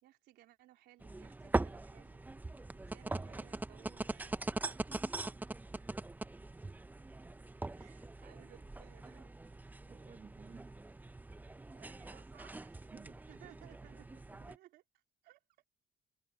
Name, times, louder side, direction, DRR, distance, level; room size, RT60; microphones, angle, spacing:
voice 1, 0.0-4.5 5.7-5.9 7.8-9.3 11.7-12.9 13.3-14.2 14.5-14.8 15.2-15.4, right 15 dB, 80° right, 3.7 m, -61 dB
sound 1, 1.0-14.6, right 2 dB, 10° right, 0.7 m, -42 dB
voice 2, 4.7-5.4 9.9-10.7 12.9-14.5, right 6 dB, 30° right, 1.4 m, -58 dB
cardioid pair, 110°, 17 cm